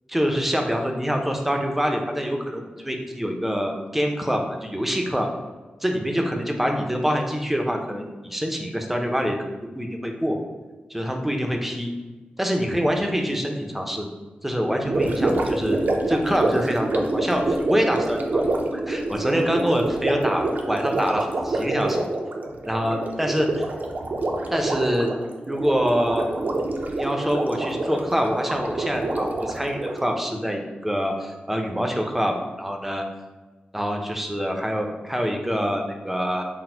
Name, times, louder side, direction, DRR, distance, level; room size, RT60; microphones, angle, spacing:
voice 1, 0.1-5.3 5.8-9.4 9.7-10.4 10.9-11.9 12.4-14.1 14.4-15.8 16.1-22.1 22.7-23.6 24.5-25.1 25.5-26.3 27.0-33.0 33.7-36.4, equal, 5° right, 2 dB, 0.5 m, -25 dB
Gurgling, 14.8-30.1, right 2 dB, 55° right, 0.4 m, -26 dB
4.1 x 2.0 x 4.3 m, 1.2 s
wide cardioid pair, 105°, 3 cm